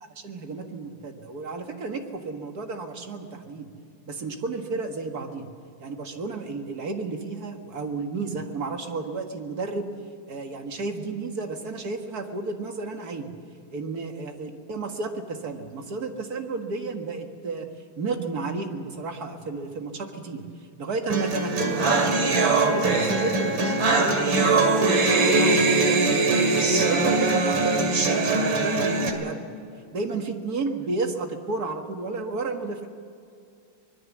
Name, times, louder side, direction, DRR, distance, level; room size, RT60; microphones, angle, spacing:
voice 1, 0.2-3.7 4.1-5.5 5.8-9.9 10.3-13.3 13.7-17.7 18.0-20.4 20.8-24.8 25.1-29.4 29.9-32.9, right 3 dB, 55° right, 4 dB, 2.2 m, -32 dB
sound 1, 21.1-29.1, right 3 dB, 80° right, 3.1 m, -21 dB
25.0 x 20.5 x 7.4 m, 2.4 s
omnidirectional pair, 2.1 m